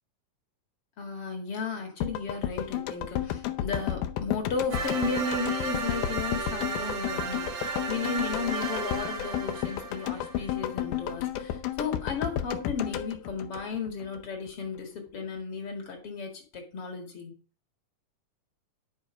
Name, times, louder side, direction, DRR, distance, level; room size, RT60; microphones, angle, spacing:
voice 1, 1.0-17.4, left 4 dB, 45° left, 2 dB, 2.7 m, -34 dB
sound 1, 2.0-14.2 14.5-14.6, left 11 dB, 75° left, 2.2 m, -33 dB
sound 2, 4.7-10.6, right 5 dB, 55° right, 1.4 m, -34 dB
10.5 x 5.3 x 5.1 m, 0.37 s
omnidirectional pair, 3.8 m